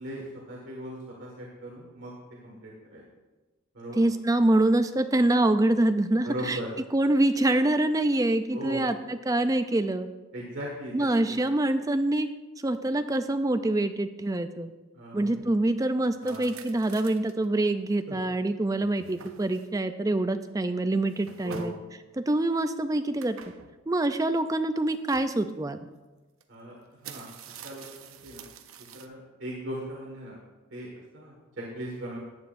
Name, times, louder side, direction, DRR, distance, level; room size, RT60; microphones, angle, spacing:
voice 1, 0.0-3.0 3.7-4.0 6.2-6.7 8.5-8.9 10.3-11.4 14.9-15.4 16.2-16.4 18.1-18.2 21.4-21.7 26.5-28.5 28.8-30.4 30.7-32.2, right 1 dB, 60° right, -3 dB, 1.8 m, -39 dB
voice 2, 4.0-6.6 6.9-10.1 10.9-12.3 12.6-14.7 15.1-21.7 22.2-23.4 23.9-25.8, right 1 dB, 15° right, 9 dB, 0.4 m, -25 dB
sound 1, 16.2-17.4 18.0-18.1 18.7-19.8 21.0-21.9 23.2-23.8 24.9-25.4 26.4-26.5 26.8-29.1, right 6 dB, 75° right, 0.6 m, -47 dB
14.0 x 9.3 x 2.6 m, 1.2 s
head